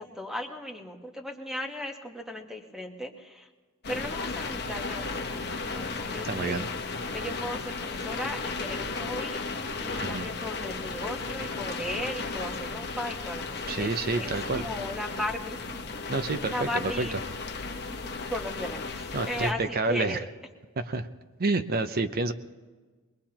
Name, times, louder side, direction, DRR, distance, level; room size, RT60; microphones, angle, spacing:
voice 1, 0.0-3.5 3.9-6.6 7.1-9.4 9.8-13.9 14.2-15.8 16.5-17.2 18.0-20.3, left 1 dB, ahead, 3 dB, 1.3 m, -36 dB
sound 1, 3.8-19.5, left 4 dB, 50° left, 1.0 m, -35 dB
voice 2, 6.3-6.7 10.0-10.3 13.7-14.6 16.1-17.1 19.1-20.2 20.8-21.1 21.4-22.3, right 3 dB, 45° right, 10 dB, 0.7 m, -28 dB
23.0 x 21.5 x 2.9 m, 1.4 s
head